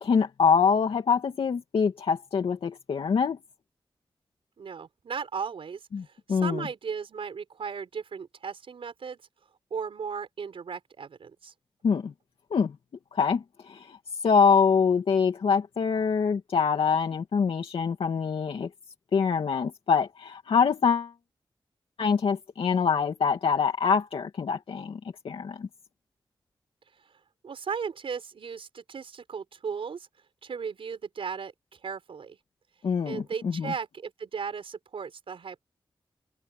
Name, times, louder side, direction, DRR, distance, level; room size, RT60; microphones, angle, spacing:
voice 1, 0.0-3.4 5.9-6.0 6.3-6.7 11.8-12.1 12.5-12.7 13.1-14.0 14.2-18.7 19.1-21.1 22.0-25.0 25.2-25.7 32.8-33.7, left 6 dB, 90° left, 2.5 m, -25 dB
voice 2, 4.6-9.2 9.7-11.5 27.4-30.1 30.4-32.4 33.1-35.6, right 6 dB, 85° right, 5.4 m, -36 dB
wide cardioid pair, 95°, 9 cm